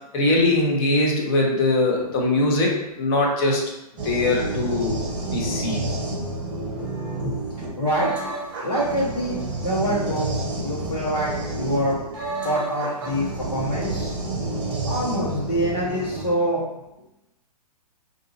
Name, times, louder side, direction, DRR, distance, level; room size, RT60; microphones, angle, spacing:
voice 1, 0.1-3.6 4.0-5.0 5.3-5.8 7.2-7.3, left 2 dB, 40° left, -1 dB, 0.9 m, -21 dB
sound 1, 4.0-16.2, right 2 dB, 20° right, 0.9 m, -29 dB
voice 2, 7.8-8.1 8.6-9.3 9.6-12.0 12.4-13.2 13.5-14.1 14.8-16.6, equal, 80° left, -9 dB, 1.3 m, -25 dB
2.7 x 2.5 x 3.9 m, 0.91 s
hypercardioid pair, 125°, 20 cm